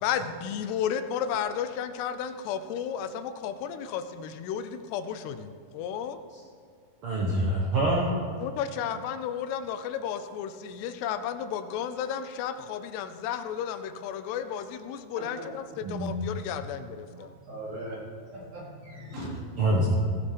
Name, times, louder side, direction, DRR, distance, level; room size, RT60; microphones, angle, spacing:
voice 1, 0.0-6.2 8.4-15.6 15.9-17.3, left 8 dB, 90° left, 10 dB, 2.9 m, -33 dB
voice 2, 7.0-8.1 15.8-16.3 19.6-19.9, right 1 dB, 65° right, -3 dB, 1.3 m, -26 dB
voice 3, 17.2-18.0 18.3-19.9, right 1 dB, 45° right, -7 dB, 5.3 m, -39 dB
17.5 x 8.3 x 5.2 m, 2.2 s
omnidirectional pair, 4.7 m